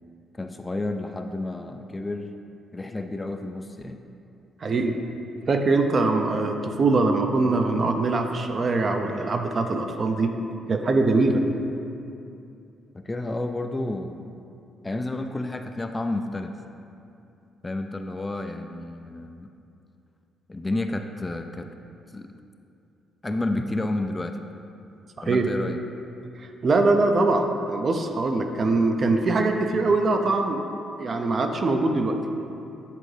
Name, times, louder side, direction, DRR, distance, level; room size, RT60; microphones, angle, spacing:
voice 1, 0.3-2.3 2.7-4.0 12.9-14.4 14.8-16.5 17.6-19.5 20.5-21.7 22.1-22.3 23.2-24.4 25.2-25.8, left 2 dB, 20° left, 6 dB, 0.3 m, -30 dB
voice 2, 4.6-5.0 5.5-10.3 10.7-11.4 25.3-25.5 26.4-30.6 31.0-32.2, right 3 dB, 45° right, 5 dB, 0.5 m, -22 dB
8.4 x 3.7 x 3.3 m, 2.6 s
cardioid pair, 90°, 0 cm